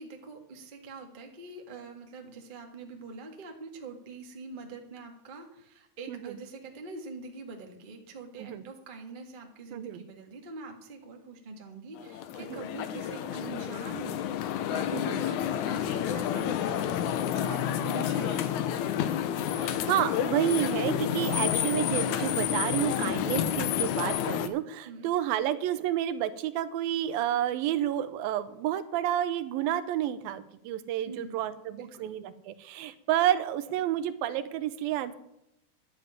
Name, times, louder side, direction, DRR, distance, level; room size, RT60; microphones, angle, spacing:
voice 1, 0.0-14.3 14.7-18.6 24.8-25.1 31.0-32.1, right 3 dB, 45° right, 3 dB, 0.6 m, -44 dB
voice 2, 9.7-10.0 12.4-12.6 14.9-15.2 17.9-18.1 19.5-35.1, right 12 dB, 80° right, 13 dB, 2.5 m, -30 dB
sound 1, 12.0-24.5, left 10 dB, 75° left, 1.9 m, -30 dB
11.0 x 7.6 x 9.4 m, 0.80 s
omnidirectional pair, 4.3 m